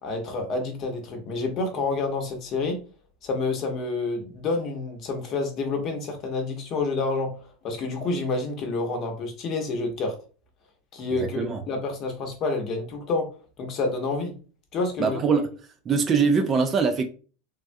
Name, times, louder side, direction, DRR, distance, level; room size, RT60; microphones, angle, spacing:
voice 1, 0.0-2.8 3.2-10.1 10.9-13.3 13.6-14.3 14.7-15.2, left 3 dB, 40° left, 0.8 m, -28 dB
voice 2, 11.1-11.6 15.0-15.5 15.9-17.0, right 5 dB, 25° right, 0.4 m, -22 dB
3.4 x 2.2 x 2.6 m
supercardioid pair, 140°, 0 cm